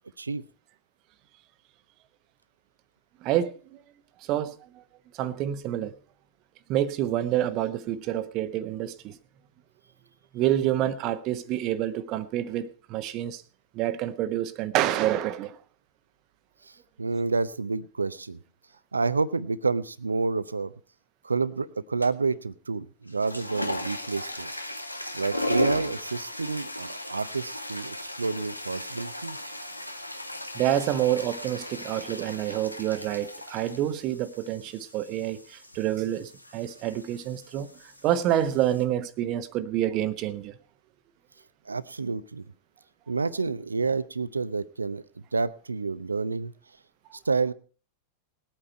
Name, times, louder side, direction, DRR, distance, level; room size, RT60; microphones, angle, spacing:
voice 1, 3.2-3.8 4.2-4.8 5.1-5.9 6.7-9.2 10.3-13.4 13.7-15.6 30.5-37.7 38.0-40.6, right 12 dB, 40° right, 1.0 m, -28 dB
voice 2, 17.0-18.4 18.9-20.7 21.2-24.5 24.9-29.5 41.7-42.4 43.1-45.0 45.3-46.5 47.3-47.5, right 4 dB, 80° right, 0.6 m, -29 dB
sound 1, 22.0-22.3 23.0-38.8, left 1 dB, 85° left, 1.1 m, -36 dB
19.5 x 8.8 x 4.5 m
figure-of-eight pair, 90°, 0 cm